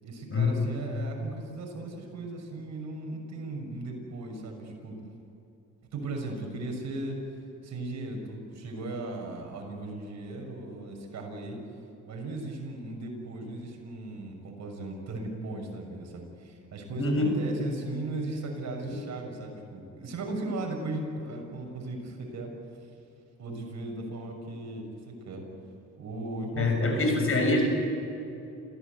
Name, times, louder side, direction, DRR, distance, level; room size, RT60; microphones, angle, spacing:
voice 1, 0.0-5.0 5.9-7.2 7.6-11.6 12.1-22.5 23.4-25.5 26.0-27.7, right 2 dB, 65° right, 2 dB, 6.4 m, -37 dB
voice 2, 17.0-17.3 18.9-19.0 26.6-27.7, left 3 dB, 45° left, 3 dB, 6.9 m, -25 dB
28.0 x 16.5 x 8.3 m, 2.9 s
cardioid pair, 90°, 30 cm